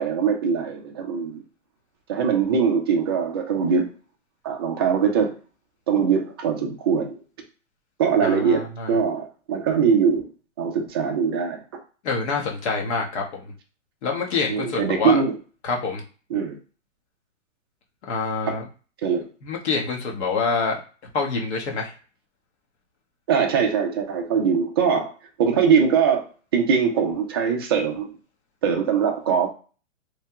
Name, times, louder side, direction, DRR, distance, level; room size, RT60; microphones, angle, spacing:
voice 1, 0.0-1.4 2.1-3.9 4.4-5.3 5.9-7.2 8.0-10.3 10.6-11.6 14.5-15.3 16.3-16.6 19.0-19.3 23.3-25.1 25.4-26.3 26.5-28.1 28.6-29.5, right 6 dB, 20° right, 2 dB, 0.3 m, -22 dB
voice 2, 8.2-9.0 12.0-13.5 14.0-15.2 15.6-16.0 18.1-18.7 19.4-21.9, left 4 dB, 60° left, 0 dB, 1.2 m, -26 dB
3.2 x 2.2 x 2.8 m, 0.37 s
hypercardioid pair, 145°, 38 cm